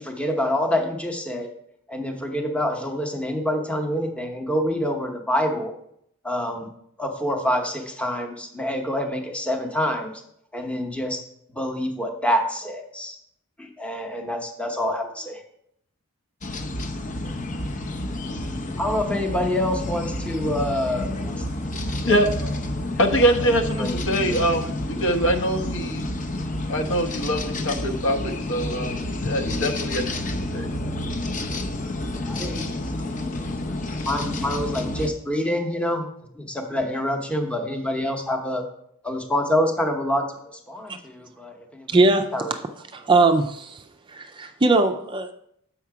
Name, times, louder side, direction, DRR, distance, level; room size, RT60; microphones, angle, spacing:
voice 1, 0.0-1.5 1.9-5.7 6.2-6.7 7.0-10.1 10.5-11.2 11.6-13.2 13.6-15.4 18.8-21.4 21.9-22.0 22.4-22.8 23.4-23.5 23.8-23.9 32.3-32.7 33.4-33.7 34.1-36.1 36.3-38.6 39.0-41.9 42.3-42.5, left 1 dB, 5° left, 3 dB, 0.9 m, -26 dB
sound 1, 16.4-35.1, left 1 dB, 35° left, 0.7 m, -29 dB
voice 2, 23.0-26.1 26.7-30.7, equal, 60° left, 5 dB, 1.0 m, -24 dB
voice 3, 41.9-42.3 42.9-43.8 44.1-45.3, right 3 dB, 20° right, 6 dB, 0.4 m, -20 dB
7.1 x 5.7 x 4.7 m, 0.72 s
head